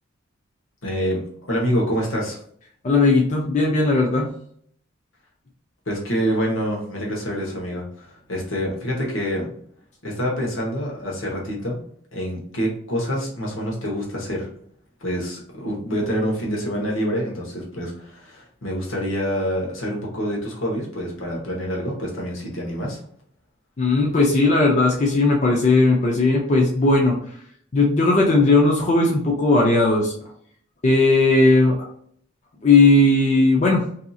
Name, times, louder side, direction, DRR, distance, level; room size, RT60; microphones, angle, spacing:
voice 1, 0.8-2.4 5.9-9.5 10.0-11.8 12.1-14.5 15.0-23.0, equal, 75° left, -2 dB, 1.0 m, -26 dB
voice 2, 2.8-4.3 23.8-27.2 27.7-30.1 30.8-31.8 32.6-33.8, left 2 dB, 35° left, -1 dB, 0.4 m, -17 dB
2.7 x 2.6 x 2.3 m, 0.63 s
head